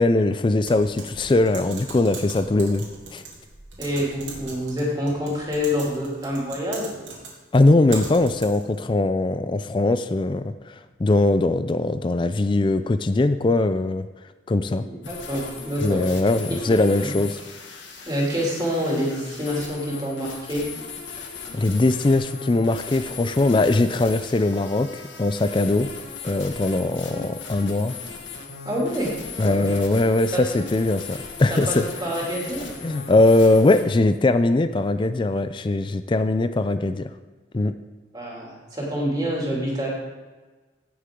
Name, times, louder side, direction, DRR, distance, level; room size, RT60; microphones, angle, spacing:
voice 1, 0.0-3.2 7.5-14.1 14.5-14.9 15.8-17.4 21.5-25.9 26.2-28.0 29.4-31.8 32.8-37.1 37.5-37.7, left 2 dB, 25° left, 10 dB, 0.4 m, -21 dB
Typing, 0.7-8.8, right 4 dB, 90° right, 2.8 m, -40 dB
voice 2, 3.8-7.2 14.8-16.0 18.1-20.6 28.6-29.1 29.4-29.7 30.3-30.4 31.5-32.7 38.1-39.9, equal, 20° right, -4 dB, 2.8 m, -27 dB
sound 1, 15.0-33.8, left 5 dB, 90° left, 1.7 m, -38 dB
16.5 x 6.6 x 3.7 m, 1.3 s
head